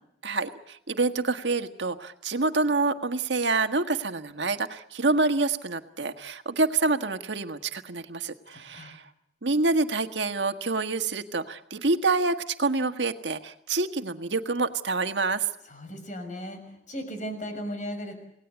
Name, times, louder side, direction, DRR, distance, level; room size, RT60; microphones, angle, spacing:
voice 1, 0.2-9.0 9.4-15.4, right 3 dB, 80° right, 7 dB, 1.6 m, -27 dB
voice 2, 8.5-9.0 15.7-18.2, equal, 45° left, 6 dB, 6.3 m, -37 dB
28.5 x 18.5 x 8.2 m, 0.79 s
head